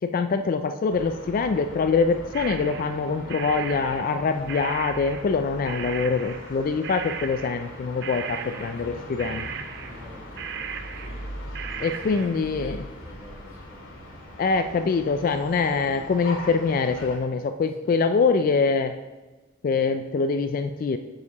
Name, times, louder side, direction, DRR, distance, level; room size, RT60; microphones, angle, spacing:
voice 1, 0.0-9.5 11.8-12.8 14.4-19.0 19.6-21.0, left 4 dB, 45° left, 8 dB, 0.3 m, -24 dB
sound 1, 0.9-17.2, left 1 dB, 85° left, 2.0 m, -41 dB
sound 2, 2.3-5.4 5.6-6.6 6.8-7.8 8.0-12.5, right 7 dB, 60° right, 0.5 m, -37 dB
voice 2, 8.2-8.6 9.7-11.2 11.7-14.4 17.8-18.0, equal, 10° right, -4 dB, 1.9 m, -48 dB
8.2 x 6.5 x 2.9 m, 1.2 s
head